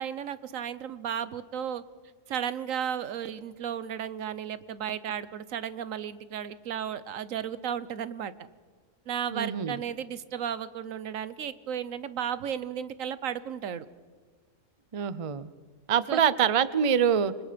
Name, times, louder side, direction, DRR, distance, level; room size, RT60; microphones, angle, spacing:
voice 1, 0.0-1.8 2.3-8.3 9.1-13.9 16.1-16.2, right 8 dB, 80° right, 15 dB, 1.3 m, -34 dB
voice 2, 9.3-9.8 14.9-15.5 15.9-17.3, right 8 dB, 35° right, 16 dB, 0.5 m, -25 dB
27.5 x 24.5 x 5.2 m, 1.5 s
omnidirectional pair, 1.4 m